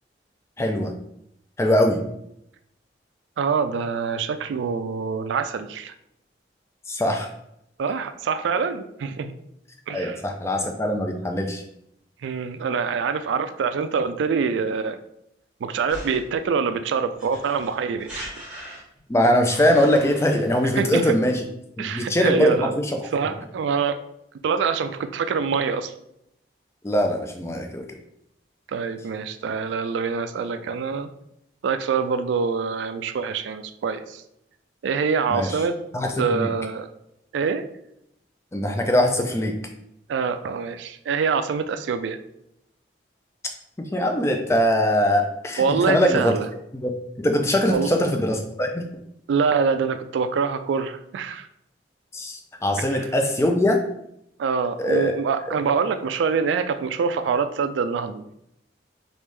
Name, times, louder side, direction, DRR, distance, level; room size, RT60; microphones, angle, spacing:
voice 1, 0.6-0.9 1.6-2.0 6.9-7.3 9.9-11.6 19.1-21.4 21.9-23.0 26.8-27.9 35.3-35.6 35.9-36.5 38.5-39.6 43.8-46.3 46.7-46.9 47.2-48.8 52.1-53.8 54.8-55.1 55.5-55.6, left 1 dB, 15° left, 4 dB, 0.3 m, -22 dB
voice 2, 3.4-5.9 7.8-9.3 9.9-10.2 12.2-15.0 15.6-18.2 20.8-21.3 21.8-22.8 23.1-24.0 24.4-25.9 28.7-31.1 31.6-34.2 34.8-35.8 36.2-36.9 37.3-37.6 40.1-42.2 45.6-46.5 47.7-47.9 49.3-51.5 52.9-53.0 54.4-58.2, right 5 dB, 80° right, 10 dB, 0.3 m, -25 dB
sound 1, 15.9-16.4 17.2-19.1 19.5-21.4, right 1 dB, 5° right, 1.0 m, -38 dB
3.3 x 2.6 x 3.2 m, 0.79 s
head